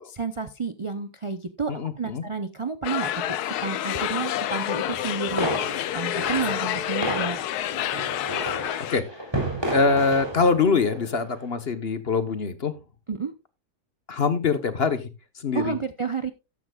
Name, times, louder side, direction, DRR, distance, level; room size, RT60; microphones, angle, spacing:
voice 1, 0.0-7.4 13.1-13.3 15.5-16.3, right 5 dB, 55° right, 10 dB, 0.3 m, -31 dB
voice 2, 1.7-2.2 8.9-9.2 9.7-12.7 14.1-15.1 15.3-15.8, left 4 dB, 40° left, 10 dB, 1.2 m, -24 dB
sound 1, 2.8-9.0, left 12 dB, 75° left, 1.2 m, -28 dB
sound 2, 4.9-11.3, right 1 dB, 15° right, 3.5 m, -32 dB
13.5 x 10.5 x 2.4 m, 0.26 s
omnidirectional pair, 1.7 m